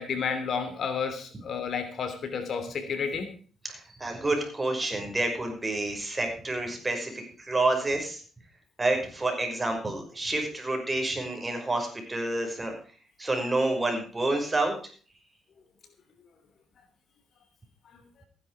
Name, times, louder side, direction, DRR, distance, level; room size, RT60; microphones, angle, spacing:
voice 1, 0.0-3.3, left 6 dB, 60° left, 8 dB, 2.9 m, -31 dB
voice 2, 3.6-7.1 7.4-8.2 8.8-12.7 13.2-14.7, right 2 dB, 20° right, 3 dB, 5.6 m, -28 dB
15.0 x 10.5 x 4.8 m, 0.42 s
cardioid pair, 90°, 0 cm